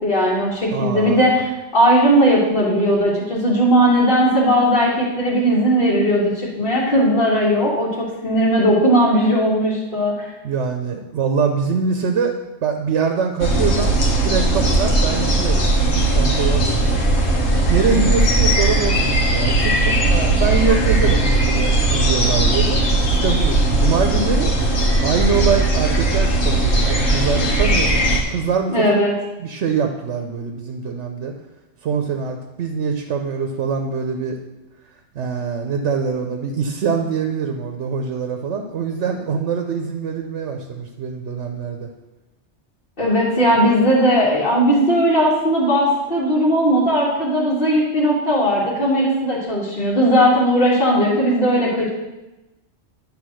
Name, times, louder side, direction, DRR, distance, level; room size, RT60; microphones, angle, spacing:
voice 1, 0.0-10.1 28.7-29.1 43.0-51.9, equal, 50° left, -9 dB, 1.8 m, -17 dB
voice 2, 0.7-1.2 10.4-12.3 12.6-17.0 17.7-22.8 23.1-24.6 25.0-28.9 29.4-31.3 31.8-34.4 35.1-41.9, right 5 dB, 90° right, 4 dB, 1.0 m, -23 dB
sound 1, 13.4-28.2, right 2 dB, 75° left, 1.4 m, -18 dB
10.0 x 3.4 x 6.2 m, 1.0 s
omnidirectional pair, 1.2 m